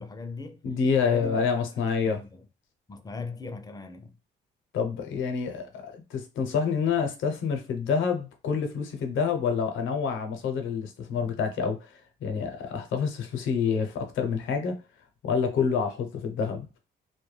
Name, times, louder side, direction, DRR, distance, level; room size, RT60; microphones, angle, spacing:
voice 1, 0.0-0.6 1.0-2.4 2.9-4.1, left 4 dB, 20° left, 0.5 m, -39 dB
voice 2, 0.6-2.2 4.7-14.8 15.2-16.7, left 6 dB, 80° left, 0.7 m, -28 dB
2.2 x 2.2 x 3.1 m
cardioid pair, 90°, 20 cm